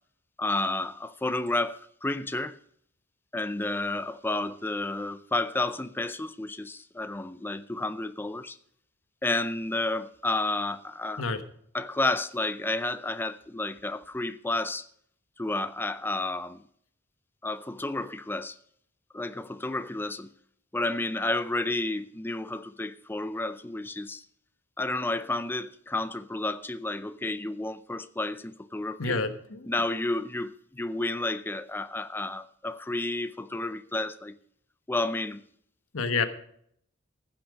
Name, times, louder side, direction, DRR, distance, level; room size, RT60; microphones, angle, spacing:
voice 1, 0.4-2.6 3.3-8.6 9.2-11.2 11.7-14.8 15.4-16.6 17.4-18.6 19.1-20.3 20.7-24.2 24.8-29.2 29.7-34.3 34.9-35.4, left 2 dB, 10° left, 0.4 m, -31 dB
voice 2, 29.0-29.7 35.9-36.3, left 4 dB, 85° left, 1.2 m, -28 dB
15.5 x 6.0 x 6.3 m
head